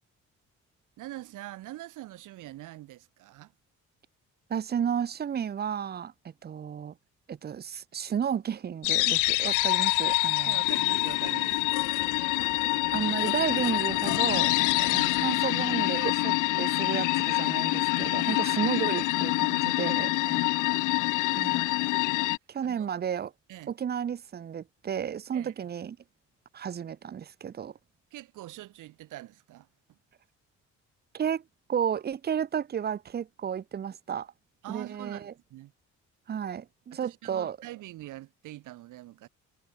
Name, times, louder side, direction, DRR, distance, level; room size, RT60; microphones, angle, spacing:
voice 1, 1.0-3.5 10.5-11.7 14.8-15.1 18.4-18.7 20.2-20.5 22.6-22.9 23.5-23.7 25.3-25.5 28.1-30.0 34.6-35.7 36.9-39.3, right 16 dB, 90° right, 5.6 m, -44 dB
voice 2, 4.5-6.1 6.4-6.9 7.3-10.6 12.9-14.5 14.9-20.1 21.3-21.6 22.5-23.3 23.7-26.0 26.5-27.7 31.1-31.4 31.7-34.3 34.7-35.3 36.3-37.6, right 8 dB, 35° right, 0.6 m, -32 dB
sound 1, 8.8-22.4, left 20 dB, 90° left, 0.5 m, -26 dB
cardioid pair, 90°, 30 cm